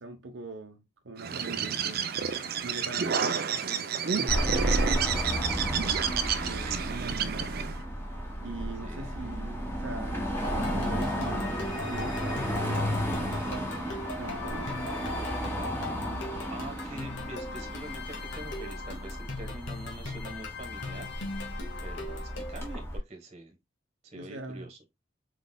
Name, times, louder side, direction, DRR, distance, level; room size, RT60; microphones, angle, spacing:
voice 1, 0.0-2.0 2.6-3.9 4.1-5.4 6.2-6.7 7.2-7.5 8.4-14.7 24.1-24.7, right 2 dB, 80° right, 0.7 m, -42 dB
Bird, 1.2-7.8, right 7 dB, 50° right, 0.5 m, -30 dB
Car passing by / Traffic noise roadway noise / Engine, 4.3-23.0, equal, 10° left, 1.6 m, -33 dB
voice 2, 8.8-9.1 16.4-21.1 21.8-23.6 24.0-24.8, right 2 dB, 35° right, 1.3 m, -45 dB
sound 1, 10.4-22.7, left 3 dB, 75° left, 1.7 m, -40 dB
4.6 x 4.1 x 2.2 m
head